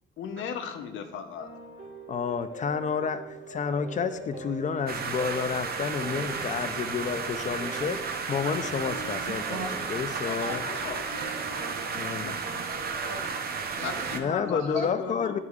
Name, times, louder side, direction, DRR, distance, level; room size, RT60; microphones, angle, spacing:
voice 1, 0.2-1.5 10.2-11.3 12.2-12.3 13.7-15.4, left 7 dB, 75° left, 7 dB, 0.7 m, -36 dB
sound 1, 1.4-14.6, right 2 dB, 70° right, 1.8 m, -44 dB
voice 2, 2.1-10.6 11.9-12.4 14.1-15.4, left 6 dB, 40° left, 11 dB, 0.5 m, -30 dB
sound 2, 4.9-14.2, right 5 dB, 50° right, 0.7 m, -33 dB
voice 3, 10.4-11.8 12.2-12.4 12.7-14.2 14.6-14.9, right 2 dB, 90° right, 2 dB, 1.2 m, -40 dB
9.7 x 4.8 x 2.4 m, 1.1 s
cardioid pair, 90°, 20 cm